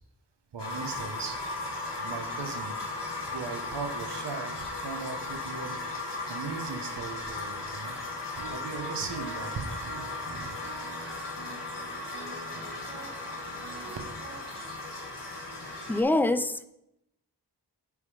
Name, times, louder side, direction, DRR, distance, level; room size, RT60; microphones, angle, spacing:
voice 1, 0.5-1.4 2.0-2.8 3.3-5.8 6.3-8.0 8.4-10.6, right 5 dB, 85° right, 6 dB, 1.0 m, -38 dB
sound 1, 0.6-16.0, left 2 dB, 85° left, 1.6 m, -37 dB
sound 2, 8.4-14.4, right 3 dB, 65° right, 1.9 m, -45 dB
voice 2, 15.9-16.6, left 2 dB, 5° left, 11 dB, 0.4 m, -25 dB
9.5 x 3.6 x 4.9 m, 0.83 s
wide cardioid pair, 60°, 40 cm